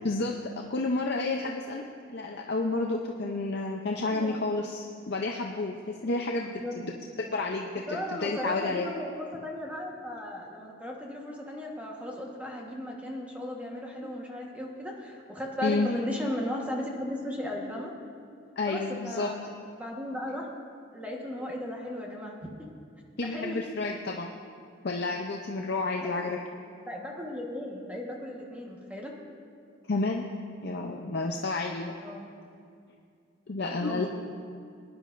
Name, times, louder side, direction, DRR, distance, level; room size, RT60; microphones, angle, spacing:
voice 1, 0.0-1.8 2.1-6.9 7.2-8.9 14.0-14.1 15.6-15.9 18.6-19.3 23.2-24.3 24.8-26.4 29.9-30.2 30.6-31.9 33.5-34.1, left 3 dB, 55° left, 1 dB, 0.6 m, -30 dB
voice 2, 4.0-4.4 6.3-6.8 7.9-17.9 18.7-19.4 19.7-20.5 20.9-22.3 23.2-23.6 26.0-26.3 26.8-29.1 32.0-32.3 33.6-34.1, left 1 dB, 5° right, -1 dB, 1.2 m, -36 dB
20.5 x 10.5 x 2.5 m, 2.3 s
head